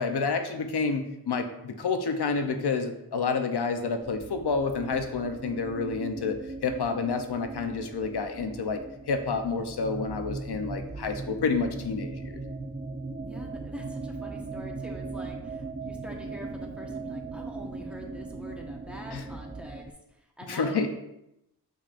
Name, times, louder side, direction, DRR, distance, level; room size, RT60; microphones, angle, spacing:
voice 1, 0.0-8.8 9.1-12.4 19.1-19.2 20.5-20.9, left 4 dB, 80° left, 6 dB, 0.7 m, -29 dB
sound 1, 4.0-19.9, right 3 dB, 20° right, 0.4 m, -39 dB
voice 2, 13.2-19.9 20.4-20.9, equal, 5° right, -1 dB, 1.2 m, -44 dB
7.1 x 5.3 x 2.5 m, 0.85 s
wide cardioid pair, 55°, 39 cm